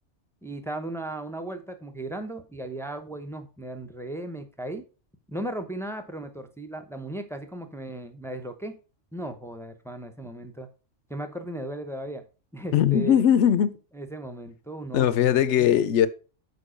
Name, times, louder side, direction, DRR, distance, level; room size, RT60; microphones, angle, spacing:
voice 1, 0.4-4.9 5.3-8.7 9.1-10.7 11.1-12.2 12.5-13.2 13.9-15.7, right 1 dB, 5° left, 0.6 m, -36 dB
voice 2, 12.7-13.8 14.9-16.1, left 10 dB, 70° left, 0.9 m, -20 dB
6.8 x 4.7 x 5.1 m
omnidirectional pair, 1.3 m